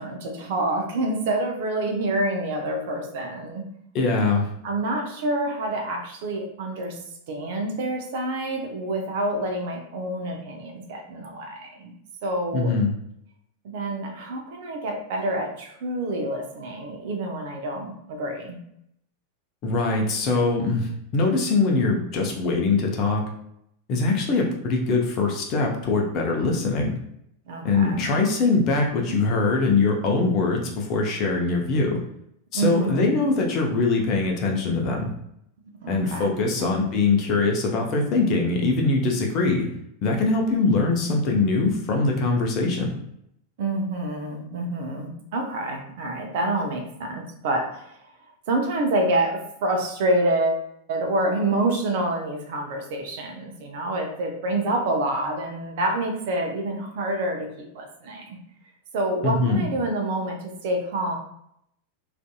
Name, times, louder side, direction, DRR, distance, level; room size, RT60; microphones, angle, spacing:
voice 1, 0.0-3.7 4.6-7.0 7.3-11.9 12.2-12.8 13.6-18.6 27.5-28.0 32.5-33.2 35.8-36.3 36.6-36.7 43.6-48.0 48.5-58.4 58.9-61.2, right 1 dB, 50° right, 2 dB, 0.5 m, -27 dB
voice 2, 3.9-4.5 12.5-12.9 19.6-23.2 23.9-27.0 27.6-32.0 32.5-35.1 35.9-39.7 40.0-42.9 59.2-59.6, left 3 dB, 35° left, 1 dB, 0.6 m, -22 dB
2.5 x 2.5 x 2.2 m, 0.74 s
figure-of-eight pair, 90°, 0 cm